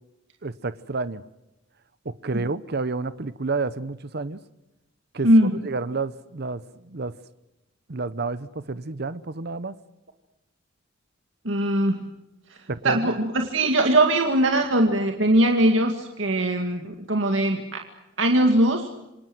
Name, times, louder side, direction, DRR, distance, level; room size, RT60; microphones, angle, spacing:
voice 1, 0.4-1.2 2.0-4.4 5.1-7.1 7.9-9.7 12.7-13.1, right 3 dB, 55° right, 15 dB, 0.9 m, -30 dB
voice 2, 11.4-12.0 12.8-17.8 18.2-18.9, right 1 dB, 70° right, 4 dB, 2.1 m, -21 dB
28.0 x 24.5 x 7.9 m, 0.94 s
head